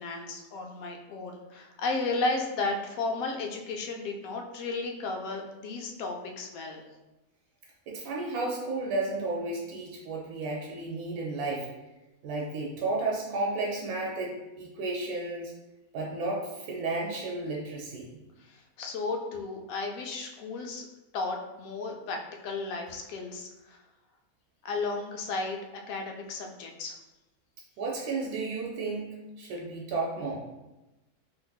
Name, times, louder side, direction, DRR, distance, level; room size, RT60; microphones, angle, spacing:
voice 1, 0.0-6.8 18.4-20.8 21.1-23.8 24.6-25.6 25.9-26.9, left 3 dB, 75° left, 2 dB, 1.0 m, -34 dB
voice 2, 7.9-11.7 12.2-15.5 15.9-18.2 27.8-30.4, right 3 dB, 85° right, -2 dB, 1.1 m, -33 dB
3.8 x 2.7 x 2.3 m, 1.0 s
omnidirectional pair, 1.6 m